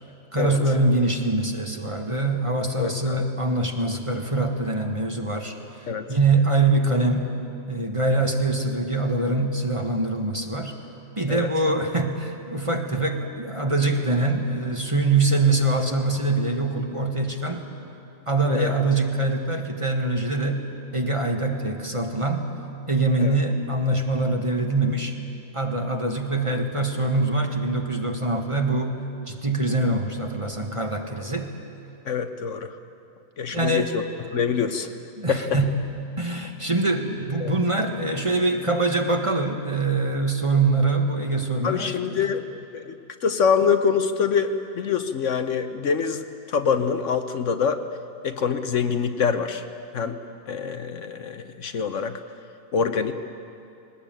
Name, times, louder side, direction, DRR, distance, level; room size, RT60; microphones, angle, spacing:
voice 1, 0.3-5.5 6.1-7.3 7.7-10.7 11.2-17.7 18.3-22.5 22.9-25.2 25.5-29.0 29.3-31.5 33.5-33.9 35.2-35.8 36.2-42.2, right 2 dB, 25° right, 3 dB, 1.5 m, -24 dB
voice 2, 2.8-3.2 5.9-6.1 11.3-11.5 18.5-18.7 23.2-23.4 32.0-32.8 33.4-34.0 34.3-34.9 35.3-35.6 37.4-37.6 41.6-42.4 42.7-42.9 43.2-47.8 48.2-49.6 49.9-50.2 50.5-52.2 52.7-53.1, left 6 dB, 65° left, 9 dB, 1.1 m, -25 dB
21.0 x 19.0 x 9.0 m, 2.8 s
omnidirectional pair, 1.4 m